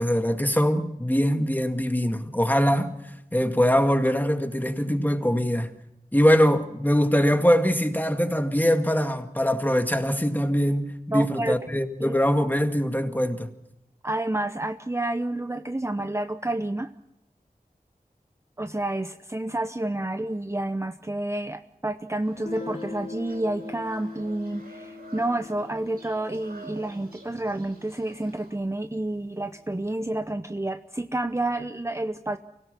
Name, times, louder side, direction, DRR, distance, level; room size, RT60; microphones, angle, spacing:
voice 1, 0.0-2.9 3.3-5.7 6.1-13.5, equal, 10° left, 2.0 m, -22 dB
voice 2, 11.1-11.6 12.0-12.2 14.0-16.9 18.6-32.4, right 1 dB, 20° right, 0.8 m, -29 dB
sound 1, 22.2-28.5, right 2 dB, 90° right, 5.3 m, -49 dB
Guitar, 22.4-27.9, left 4 dB, 45° left, 2.8 m, -41 dB
25.0 x 17.0 x 7.0 m
wide cardioid pair, 50°, 15 cm